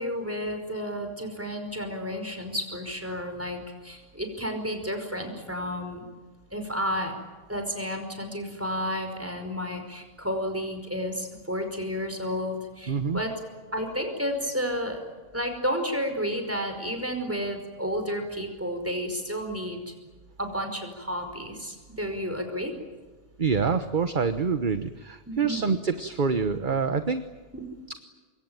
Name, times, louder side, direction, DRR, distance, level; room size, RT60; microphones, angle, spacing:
voice 1, 0.0-6.1 6.5-7.1 7.5-13.4 13.7-19.8 20.4-22.7 25.3-25.7 27.5-27.7, equal, 10° right, 5 dB, 5.2 m, -31 dB
voice 2, 12.9-13.2 23.4-27.2, right 5 dB, 35° right, 9 dB, 1.2 m, -26 dB
26.0 x 23.0 x 9.1 m, 1.3 s
omnidirectional pair, 1.5 m